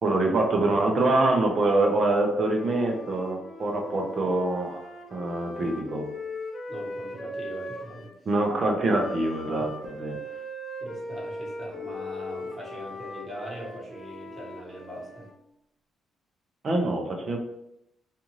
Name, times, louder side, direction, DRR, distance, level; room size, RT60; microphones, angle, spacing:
voice 1, 0.0-4.8 5.1-6.1 8.3-10.2 16.6-17.4, right 2 dB, 45° right, 2 dB, 0.6 m, -25 dB
Wind instrument woodwind instrument, 2.4-8.2 8.9-15.3, left 1 dB, 35° left, 0.7 m, -39 dB
voice 2, 6.7-8.1 10.8-15.3, equal, 25° right, -4 dB, 1.3 m, -40 dB
2.6 x 2.4 x 3.0 m, 0.82 s
cardioid pair, 90°, 0 cm